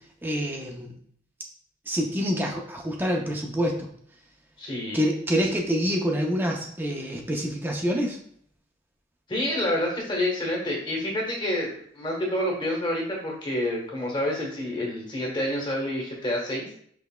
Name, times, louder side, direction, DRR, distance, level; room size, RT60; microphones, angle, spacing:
voice 1, 0.2-0.9 1.9-3.9 4.9-8.2, equal, 10° right, 0 dB, 0.5 m, -26 dB
voice 2, 4.6-5.0 9.3-16.7, left 1 dB, 25° left, -2 dB, 1.1 m, -28 dB
6.0 x 3.3 x 2.2 m, 0.63 s
head